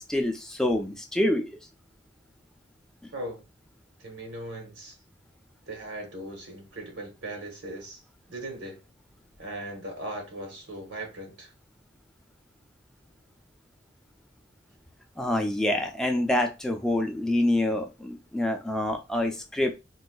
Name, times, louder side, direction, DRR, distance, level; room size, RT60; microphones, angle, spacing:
voice 1, 0.1-1.5 15.2-19.7, left 1 dB, 5° left, 0.4 m, -26 dB
voice 2, 3.1-3.4 4.0-5.0 5.7-8.0 8.3-8.8 9.4-11.5, right 1 dB, 75° right, 1.1 m, -38 dB
3.9 x 2.5 x 2.3 m
head